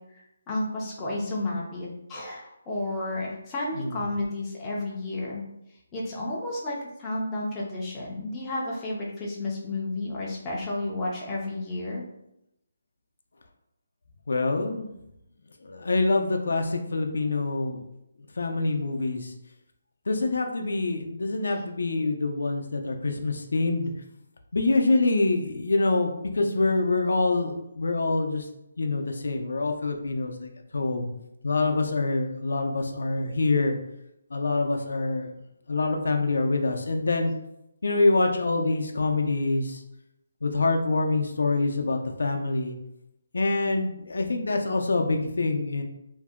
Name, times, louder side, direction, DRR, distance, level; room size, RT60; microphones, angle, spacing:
voice 1, 0.1-5.4 5.9-12.0, left 2 dB, 10° left, -5 dB, 0.4 m, -32 dB
voice 2, 3.7-4.0 14.3-14.9 15.6-17.9 18.4-19.3 20.1-23.9 24.5-28.5 28.8-31.1 31.4-33.8 34.3-35.3 35.7-37.3 37.8-39.8 40.4-42.8 43.3-45.8, left 3 dB, 70° left, 4 dB, 0.5 m, -25 dB
2.6 x 2.1 x 3.5 m, 0.83 s
hypercardioid pair, 175°, 0 cm